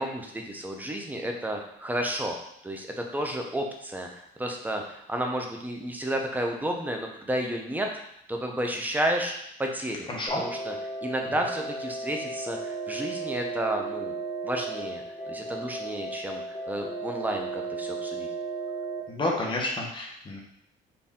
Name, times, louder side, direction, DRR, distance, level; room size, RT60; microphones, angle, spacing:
voice 1, 0.0-2.4 2.6-7.9 8.3-9.3 9.6-10.1 10.3-10.7 11.0-14.1 14.4-18.3, right 1 dB, 10° right, 2 dB, 0.6 m, -31 dB
sound 1, 10.3-19.0, right 3 dB, 45° left, 1.7 m, -35 dB
voice 2, 19.1-20.4, left 2 dB, 30° left, -2 dB, 1.1 m, -30 dB
4.3 x 2.7 x 3.6 m, 0.74 s
cardioid pair, 110°, 17 cm